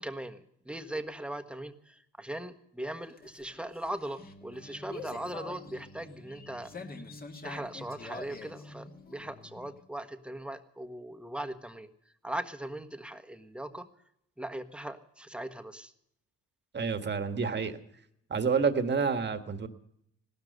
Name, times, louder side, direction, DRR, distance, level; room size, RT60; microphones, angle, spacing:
voice 1, 0.0-7.0 7.4-11.9 12.2-13.9 14.4-15.9, right 1 dB, 5° right, 8 dB, 1.4 m, -39 dB
sound 1, 2.9-9.8, left 2 dB, 30° left, 2.1 m, -46 dB
voice 2, 16.7-17.8 18.3-19.7, right 5 dB, 35° right, 8 dB, 1.7 m, -28 dB
17.0 x 13.0 x 6.6 m, 0.74 s
cardioid pair, 90°, 30 cm